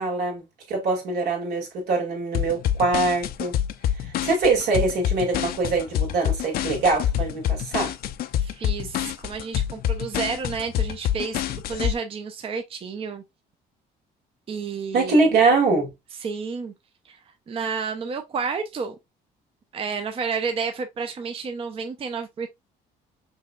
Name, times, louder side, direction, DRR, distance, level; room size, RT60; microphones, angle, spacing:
voice 1, 0.0-3.5 4.0-7.9 14.9-15.9, right 3 dB, 75° right, 2.1 m, -23 dB
sound 1, 2.3-11.9, left 10 dB, 60° left, 0.5 m, -26 dB
voice 2, 8.4-13.2 14.5-15.3 16.2-16.7 17.0-19.0 19.7-22.5, right 5 dB, 35° right, 0.5 m, -31 dB
5.4 x 3.0 x 2.2 m
cardioid pair, 110°, 17 cm